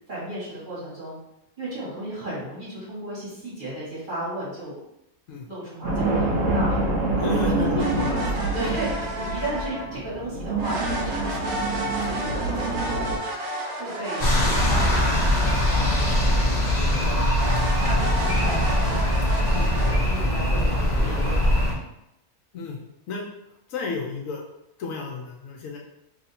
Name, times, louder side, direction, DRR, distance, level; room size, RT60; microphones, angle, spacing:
voice 1, 0.1-1.2 1.6-4.7 5.5-6.8 7.2-7.9 8.5-13.0 13.8-17.2 17.6-18.9 19.4-21.5, right 1 dB, 35° right, -9 dB, 1.7 m, -35 dB
sound 1, 5.8-13.2, right 2 dB, 65° right, 1.0 m, -26 dB
voice 2, 7.2-8.2 8.6-8.7 19.5-19.7 22.5-22.8 23.1-23.3 23.7-24.4 24.8-25.8, left 4 dB, 70° left, 0 dB, 0.9 m, -32 dB
sound 2, 7.8-10.0 10.6-16.8 17.3-19.9, right 1 dB, 85° right, 1.3 m, -32 dB
sound 3, 14.2-21.7, left 1 dB, 35° left, 0.7 m, -22 dB
3.0 x 2.7 x 4.1 m, 0.85 s
omnidirectional pair, 1.5 m